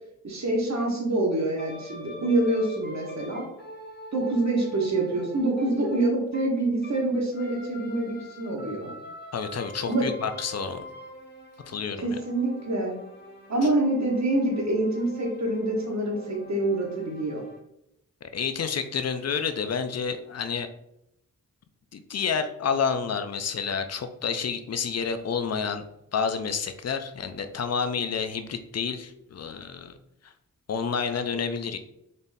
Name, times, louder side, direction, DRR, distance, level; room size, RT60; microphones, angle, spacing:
voice 1, 0.2-3.5 4.1-8.9 9.8-10.1 12.0-13.0 13.5-17.4, right 2 dB, 55° right, 0 dB, 1.2 m, -26 dB
sound 1, 1.6-7.1 7.3-17.6, equal, 30° left, 1.1 m, -44 dB
voice 2, 9.3-10.8 11.7-12.2 18.3-20.7 21.9-25.8 26.1-29.9 30.7-31.8, left 6 dB, 50° left, 9 dB, 0.5 m, -29 dB
4.0 x 3.5 x 2.6 m, 0.80 s
cardioid pair, 65°, 32 cm